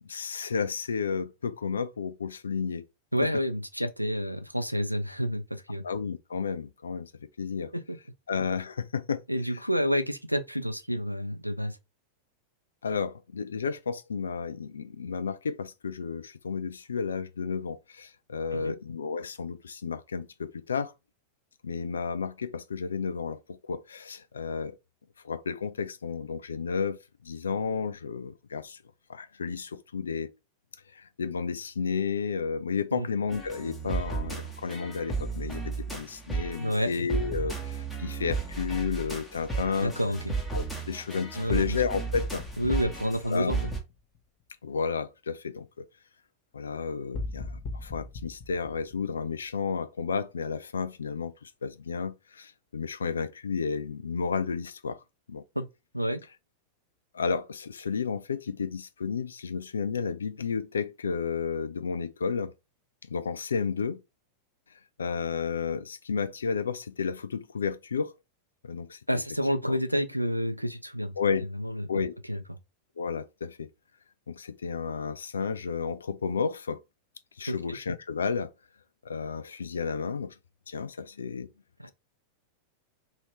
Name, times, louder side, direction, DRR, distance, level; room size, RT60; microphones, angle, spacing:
voice 1, 0.0-2.9 5.8-7.1 7.4-7.7 8.3-9.2 12.8-20.9 21.6-24.8 25.2-28.8 29.1-30.3 31.0-39.9 40.5-42.4 43.3-43.5 44.6-45.8 46.5-55.0 55.3-55.4 57.1-62.5 63.1-64.0 65.0-68.1 68.6-69.0 69.7-69.8 71.2-71.5 71.9-72.1 73.0-73.7 74.3-76.8 77.4-78.5 79.0-80.3 80.7-81.5, left 5 dB, 70° left, 0.4 m, -32 dB
voice 2, 3.1-5.8 9.3-11.8 18.5-18.8 32.9-33.1 36.6-36.9 39.8-40.4 41.3-41.8 42.6-43.7 55.6-55.7 55.9-56.2 69.1-71.1 71.5-71.9 72.3-72.6 77.5-77.8 81.8-81.9, equal, 90° right, 0.4 m, -29 dB
sound 1, 33.3-43.8, right 4 dB, 10° left, 1.0 m, -34 dB
sound 2, 42.1-44.4 47.1-49.7, left 3 dB, 35° left, 0.9 m, -39 dB
2.8 x 2.7 x 3.2 m
figure-of-eight pair, 90°, 0 cm